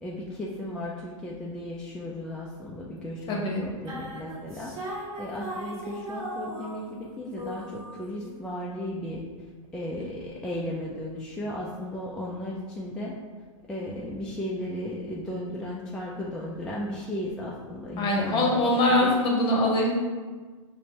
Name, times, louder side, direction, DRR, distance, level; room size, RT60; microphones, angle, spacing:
voice 1, 0.0-9.3 9.7-13.2 13.7-18.5 18.9-19.2, left 1 dB, 5° left, -6 dB, 0.3 m, -35 dB
voice 2, 3.3-3.6 18.0-19.9, left 1 dB, 25° left, -1 dB, 0.9 m, -23 dB
sound 1, 3.9-7.1 7.4-8.5, right 1 dB, 35° right, 1.2 m, -38 dB
5.0 x 2.1 x 2.9 m, 1.4 s
hypercardioid pair, 120°, 17 cm